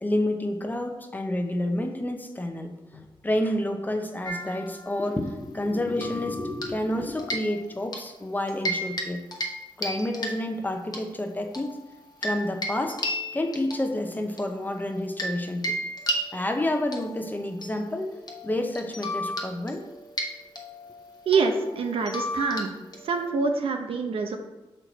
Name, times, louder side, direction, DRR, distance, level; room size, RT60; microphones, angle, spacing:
voice 1, 0.0-9.2 9.8-11.8 12.2-13.0 13.3-15.8 16.3-18.1 18.4-19.8, left 1 dB, 20° left, 5 dB, 0.7 m, -29 dB
sound 1, 4.2-5.3 6.0-6.9 7.2-8.1 8.5-9.1 9.3-9.6 9.8-11.0 11.5-15.4 15.6-23.3, equal, 45° left, 1.0 m, -34 dB
voice 2, 21.3-22.7 23.0-24.4, right 4 dB, 80° right, 4 dB, 0.7 m, -25 dB
6.3 x 4.5 x 4.0 m, 1.1 s
wide cardioid pair, 100°, 9 cm